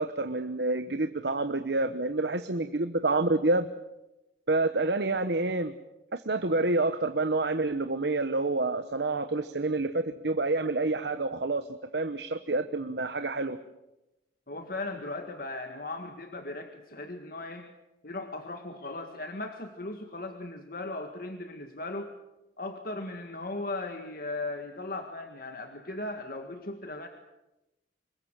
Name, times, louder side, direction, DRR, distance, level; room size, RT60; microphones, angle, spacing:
voice 1, 0.0-3.7 4.5-5.7 6.1-13.6, right 2 dB, 70° right, 9 dB, 1.1 m, -28 dB
voice 2, 14.5-17.7 18.0-22.1 22.6-27.1, left 2 dB, 50° left, 6 dB, 1.8 m, -37 dB
26.5 x 22.0 x 7.5 m, 0.95 s
head